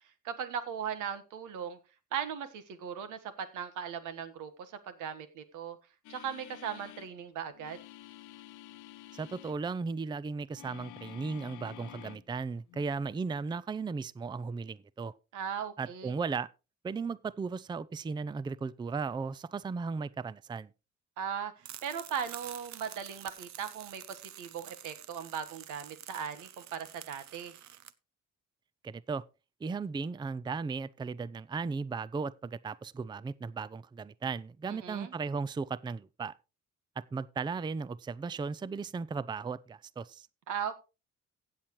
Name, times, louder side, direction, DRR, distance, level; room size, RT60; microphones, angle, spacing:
voice 1, 0.2-1.8 2.1-5.8 6.1-7.8 15.3-16.1 21.2-27.5 34.7-35.1 40.5-40.7, right 8 dB, 90° right, 1.4 m, -38 dB
sound 1, 6.0-7.1 7.5-9.6 10.5-12.3 12.7-12.8, left 15 dB, 80° left, 0.7 m, -50 dB
voice 2, 9.1-15.1 15.8-16.5 16.8-20.7 28.8-29.2 29.6-36.3 37.0-40.3, right 4 dB, 15° right, 0.4 m, -36 dB
sound 2, 21.6-27.9, right 11 dB, 65° right, 0.8 m, -49 dB
15.5 x 7.5 x 3.1 m
cardioid pair, 90°, 30 cm